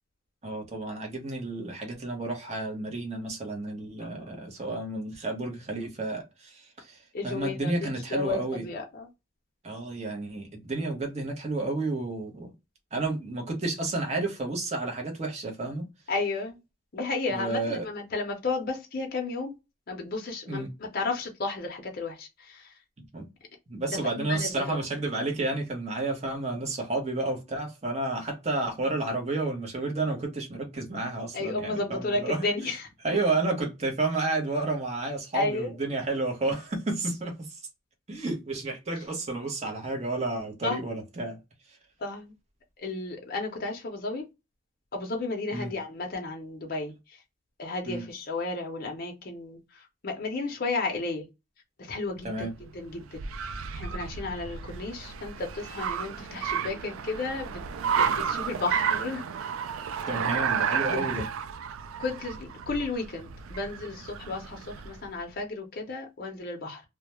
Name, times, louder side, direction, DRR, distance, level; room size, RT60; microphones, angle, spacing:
voice 1, 0.4-7.0 7.2-8.7 9.6-12.5 12.9-15.8 17.3-17.9 20.5-20.7 23.1-23.3 23.7-32.4 33.0-37.5 38.1-41.4 45.5-45.7 47.9-48.0 52.2-52.5 60.1-61.2, right 2 dB, 35° right, 0.8 m, -31 dB
voice 2, 7.1-9.1 16.1-16.6 16.9-19.5 19.9-22.7 23.9-24.8 31.3-32.9 35.3-35.7 40.6-40.8 42.0-42.3 42.8-44.3 44.9-47.2 47.6-51.3 51.8-53.2 53.7-57.6 58.0-59.2 60.0-60.1 60.9-61.1 62.0-66.8, left 3 dB, 45° left, 0.6 m, -33 dB
Car, 52.2-65.1, right 7 dB, 90° right, 0.3 m, -32 dB
2.3 x 2.1 x 2.9 m
head